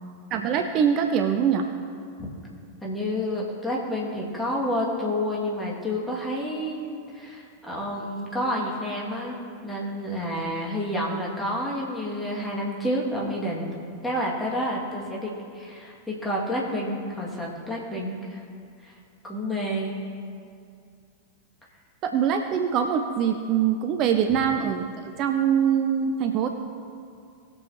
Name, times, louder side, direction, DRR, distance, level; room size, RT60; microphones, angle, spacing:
voice 1, 0.3-1.7 22.0-26.5, right 8 dB, 35° right, 6 dB, 0.6 m, -23 dB
voice 2, 2.8-13.8 14.0-18.4 18.8-19.0 19.2-20.0, equal, 10° left, -4 dB, 2.4 m, -29 dB
20.0 x 7.1 x 3.0 m, 2.4 s
figure-of-eight pair, 90°, 0 cm